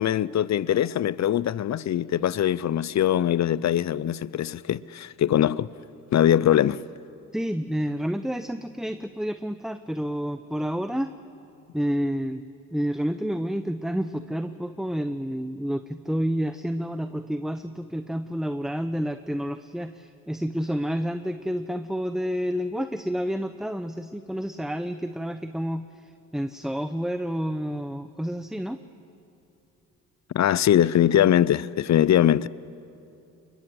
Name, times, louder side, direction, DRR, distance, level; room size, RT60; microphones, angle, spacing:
voice 1, 0.0-5.7 6.1-6.8 30.3-32.5, left 11 dB, 45° left, 0.6 m, -22 dB
voice 2, 7.3-11.1 11.7-12.4 12.7-28.8, equal, ahead, 0.7 m, -29 dB
21.5 x 21.0 x 7.9 m
supercardioid pair, 55°, 38 cm